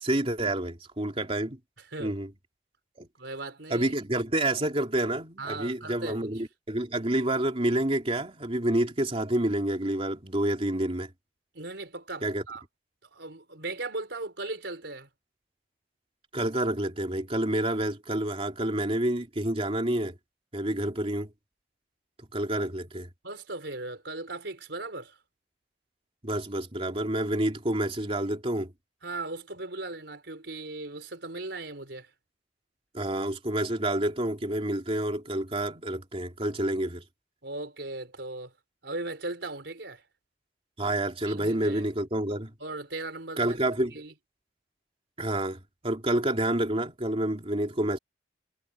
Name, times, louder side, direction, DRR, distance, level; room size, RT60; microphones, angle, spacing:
voice 1, 0.0-1.6 2.0-2.3 3.0-3.1 3.7-11.1 12.2-12.4 16.3-20.2 20.5-21.3 22.3-23.1 26.2-28.7 32.9-37.0 40.8-42.5 43.4-43.9 45.2-45.6 45.8-48.0, right 1 dB, 30° right, 3.0 m, -28 dB
voice 2, 3.2-4.0 5.4-6.3 11.5-12.6 13.0-15.1 23.2-25.2 29.0-32.1 37.4-38.5 38.8-40.0 41.3-41.8 42.6-43.6 43.9-44.1, right 2 dB, 70° right, 4.7 m, -38 dB
head